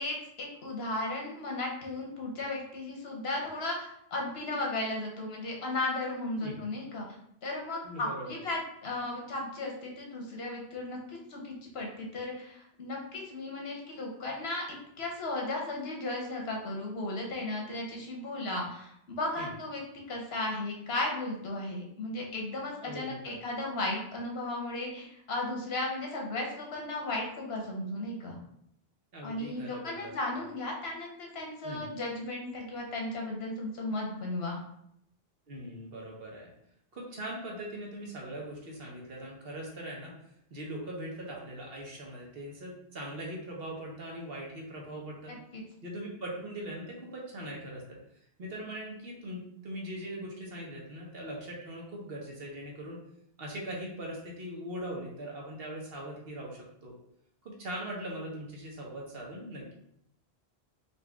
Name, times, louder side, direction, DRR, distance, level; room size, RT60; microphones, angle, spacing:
voice 1, 0.0-7.0 7.4-19.8 20.1-28.4 29.2-34.6 45.3-45.6, left 2 dB, 75° left, -1 dB, 1.2 m, -35 dB
voice 2, 7.8-8.4 19.4-19.5 22.8-23.4 29.1-30.1 31.6-31.9 35.5-36.5 36.9-40.1 40.5-45.4 45.8-48.0 48.4-53.0 53.4-56.9 57.4-59.7, right 1 dB, 65° right, -2 dB, 1.2 m, -41 dB
4.1 x 2.6 x 3.5 m, 0.73 s
omnidirectional pair, 1.1 m